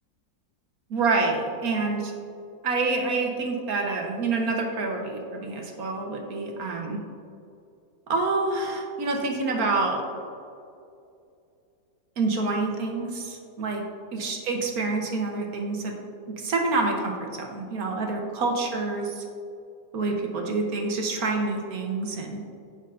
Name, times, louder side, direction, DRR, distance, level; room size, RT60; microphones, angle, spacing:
voice 1, 0.9-2.1 2.6-7.0 8.1-10.0 12.2-13.8 14.1-16.0 16.3-19.2 19.9-22.4, right 3 dB, 60° right, 2 dB, 1.3 m, -27 dB
13.5 x 5.5 x 2.6 m, 2.5 s
omnidirectional pair, 2.0 m